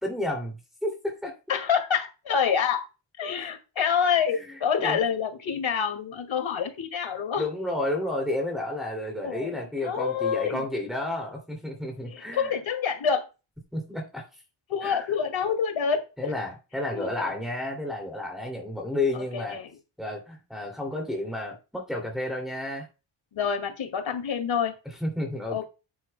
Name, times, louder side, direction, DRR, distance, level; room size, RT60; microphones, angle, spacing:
voice 1, 0.0-1.3 3.4-3.5 4.4-4.5 4.8-5.0 7.4-12.5 13.7-14.2 14.8-15.1 16.2-19.6 20.0-22.9 25.0-25.6, left 1 dB, ahead, 0 dB, 2.6 m, -31 dB
voice 2, 1.5-2.8 3.2-7.5 7.8-7.9 9.2-10.6 12.1-13.2 14.7-16.3 16.9-17.4 19.1-19.7 23.3-24.7 25.5-25.6, left 7 dB, 75° left, 6 dB, 2.2 m, -27 dB
11.5 x 9.2 x 2.2 m, 0.30 s
cardioid pair, 100°, 47 cm